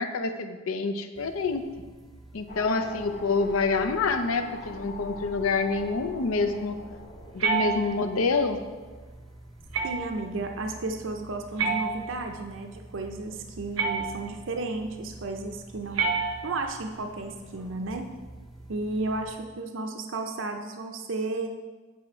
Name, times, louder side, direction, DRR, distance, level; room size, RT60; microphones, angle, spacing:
voice 1, 0.0-1.6 2.3-6.8 7.3-8.6, left 4 dB, 80° left, 8 dB, 0.6 m, -27 dB
sound 1, 1.2-19.4, right 1 dB, ahead, 0.5 m, -49 dB
sound 2, 2.5-8.9, left 2 dB, 35° left, 0.8 m, -43 dB
sound 3, 7.4-8.3 9.7-10.3 11.6-12.5 13.8-14.5 15.9-16.8, right 5 dB, 85° right, 0.9 m, -29 dB
voice 2, 9.8-18.1 18.7-21.5, right 2 dB, 60° right, 4 dB, 0.5 m, -33 dB
8.3 x 5.0 x 4.4 m, 1.3 s
head